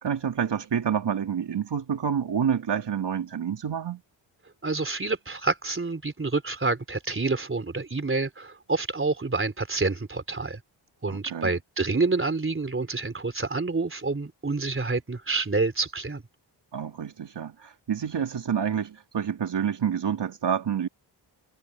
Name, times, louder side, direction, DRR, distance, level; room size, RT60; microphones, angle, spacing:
voice 1, 0.0-4.0 11.1-11.5 16.7-20.9, right 8 dB, 60° right, 2.8 m, -28 dB
voice 2, 4.6-10.6 11.0-16.2, right 3 dB, 25° right, 3.6 m, -28 dB
cardioid pair, 75°, 46 cm